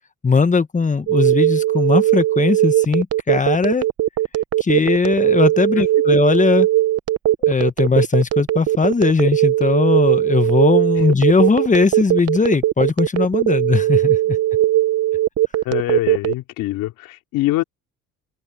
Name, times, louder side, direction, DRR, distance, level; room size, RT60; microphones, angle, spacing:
voice 1, 0.2-3.8 4.6-6.7 7.5-14.4, left 4 dB, 25° left, 1.3 m, -18 dB
Telephone, 1.1-16.3, right 14 dB, 50° right, 0.9 m, -18 dB
voice 2, 15.6-17.6, left 16 dB, 90° left, 3.3 m, -24 dB
cardioid pair, 85°, 31 cm